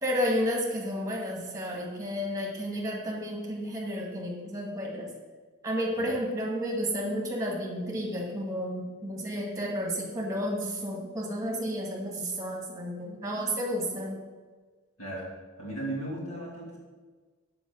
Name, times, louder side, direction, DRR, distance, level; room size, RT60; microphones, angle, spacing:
voice 1, 0.0-5.1 5.6-14.2, equal, 15° right, -1 dB, 1.6 m, -31 dB
voice 2, 15.0-15.3 15.6-16.8, right 1 dB, 80° left, -4 dB, 2.7 m, -36 dB
6.2 x 5.0 x 6.7 m, 1.4 s
head